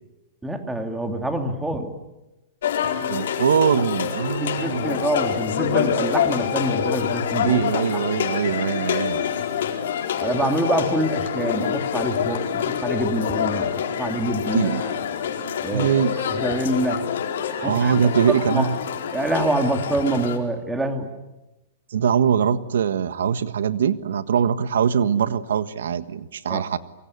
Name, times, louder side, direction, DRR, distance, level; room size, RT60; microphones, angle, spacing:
voice 1, 0.4-1.9 4.4-8.0 10.2-15.0 15.6-16.0 16.3-17.1 17.6-17.9 18.3-18.7 19.1-21.1 26.5-26.6, right 1 dB, 5° right, 5 dB, 2.7 m, -26 dB
sound 1, 2.6-20.4, left 8 dB, 70° left, 4.6 m, -26 dB
voice 2, 3.1-5.0 7.4-9.3 14.5-14.8 15.7-16.2 17.6-18.8 21.9-26.8, right 7 dB, 90° right, 12 dB, 1.5 m, -22 dB
25.5 x 24.0 x 9.7 m, 1.0 s
hypercardioid pair, 165°, 0 cm